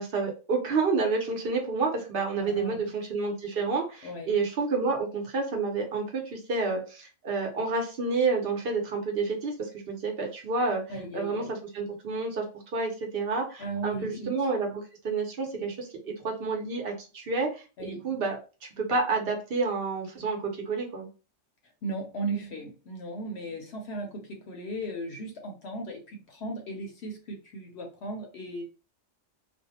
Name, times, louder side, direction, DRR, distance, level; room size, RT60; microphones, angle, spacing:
voice 1, 0.0-10.8 11.1-11.4 11.7-12.4 12.7-18.4 18.8-21.1, right 4 dB, 55° right, 1 dB, 0.9 m, -29 dB
voice 2, 2.4-2.9 4.0-4.3 10.9-11.5 13.6-14.3 17.8-18.2 21.8-28.6, right 2 dB, 70° left, 2 dB, 0.8 m, -36 dB
2.5 x 2.1 x 2.7 m, 0.33 s
omnidirectional pair, 1.2 m